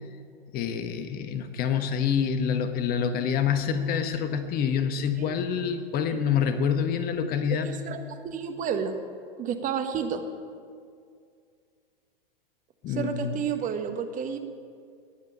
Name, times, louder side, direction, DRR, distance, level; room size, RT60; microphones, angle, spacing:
voice 1, 0.5-7.7 12.8-13.4, left 7 dB, 30° left, 9 dB, 1.3 m, -27 dB
voice 2, 7.5-8.9 9.4-10.2 12.9-14.4, right 7 dB, 25° right, 7 dB, 1.4 m, -31 dB
20.0 x 8.1 x 8.8 m, 2.2 s
figure-of-eight pair, 105°, 29 cm